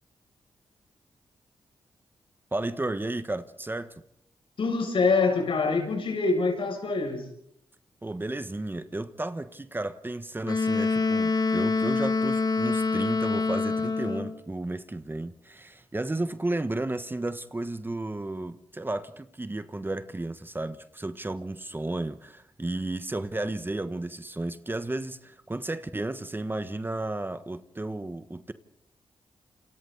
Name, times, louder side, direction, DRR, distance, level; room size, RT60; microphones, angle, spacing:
voice 1, 2.5-3.9 8.0-28.5, right 2 dB, 20° right, 1.4 m, -33 dB
voice 2, 4.6-7.3, left 4 dB, 65° left, 7.0 m, -25 dB
Wind instrument woodwind instrument, 10.4-14.4, left 4 dB, 45° left, 2.6 m, -26 dB
28.5 x 26.5 x 4.1 m
cardioid pair, 60°, 10 cm